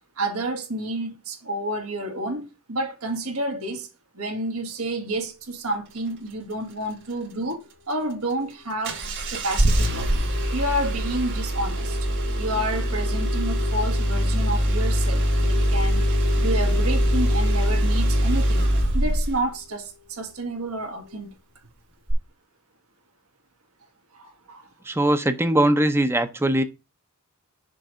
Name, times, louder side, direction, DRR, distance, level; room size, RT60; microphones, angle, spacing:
voice 1, 0.2-3.9 4.1-9.0 9.3-10.1 10.5-12.0 12.4-16.1 16.4-21.3 24.1-24.7, right 1 dB, 85° right, 1.9 m, -30 dB
Engine starting, 8.8-19.5 22.1-22.2, equal, 60° right, 2.3 m, -22 dB
voice 2, 24.9-26.6, right 1 dB, 10° right, 0.7 m, -21 dB
6.6 x 3.3 x 6.1 m
head